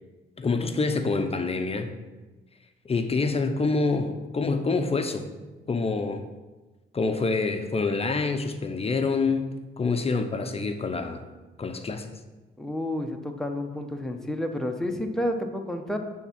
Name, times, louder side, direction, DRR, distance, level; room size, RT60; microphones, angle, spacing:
voice 1, 0.4-1.9 2.8-5.3 5.7-6.3 6.9-11.2 11.6-12.1, left 3 dB, 30° left, 6 dB, 0.7 m, -26 dB
voice 2, 12.6-16.0, left 1 dB, ahead, 3 dB, 0.9 m, -30 dB
8.8 x 3.6 x 5.8 m, 1.2 s
cardioid pair, 90°, 20 cm